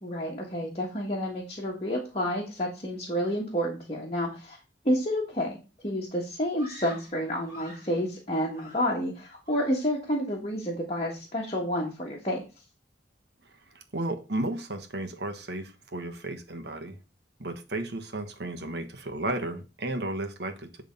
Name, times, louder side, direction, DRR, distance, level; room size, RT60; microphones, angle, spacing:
voice 1, 0.0-4.6 4.8-12.4, equal, 30° left, -3 dB, 1.6 m, -30 dB
Screaming, 6.6-8.0 8.5-9.2 9.4-9.9, left 1 dB, 20° right, 3.6 m, -47 dB
voice 2, 13.7-17.0 17.4-20.7, right 1 dB, 65° right, 6 dB, 1.3 m, -33 dB
8.9 x 3.6 x 5.3 m, 0.30 s
head